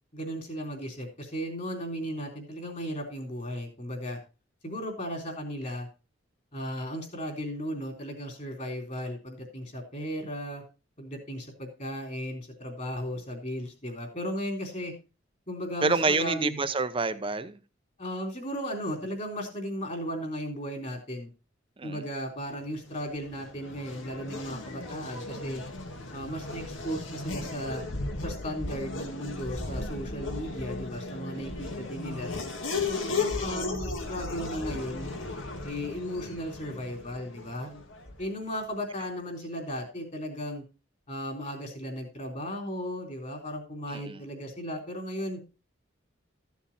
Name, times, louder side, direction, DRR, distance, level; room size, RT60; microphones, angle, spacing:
voice 1, 0.1-4.2 4.6-5.9 6.5-10.6 11.0-14.9 15.5-16.6 18.0-21.3 21.8-25.6 26.1-27.8 28.2-32.3 32.9-35.1 35.6-37.8 38.2-40.6 41.1-45.4, equal, 40° left, 3.7 m, -36 dB
voice 2, 15.8-17.6 21.8-22.0 31.3-31.6 43.9-44.2, right 3 dB, 25° right, 0.8 m, -28 dB
Race car auto racing / Accelerating revving vroom, 22.8-38.4, left 3 dB, 75° left, 2.1 m, -36 dB
14.0 x 7.2 x 4.1 m
head